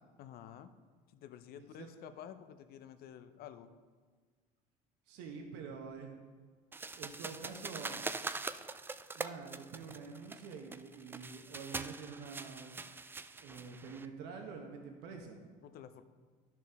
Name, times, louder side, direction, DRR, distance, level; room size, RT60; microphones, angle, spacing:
voice 1, 0.2-0.7 1.1-3.7 15.6-16.0, left 9 dB, 60° left, 10 dB, 0.6 m, -51 dB
voice 2, 5.1-6.2 7.0-8.1 9.1-12.8 13.4-15.4, right 5 dB, 70° right, 3 dB, 1.1 m, -47 dB
sound 1, 6.7-14.1, right 3 dB, 10° right, 0.3 m, -43 dB
10.5 x 6.1 x 3.5 m, 1.5 s
supercardioid pair, 85°, 18 cm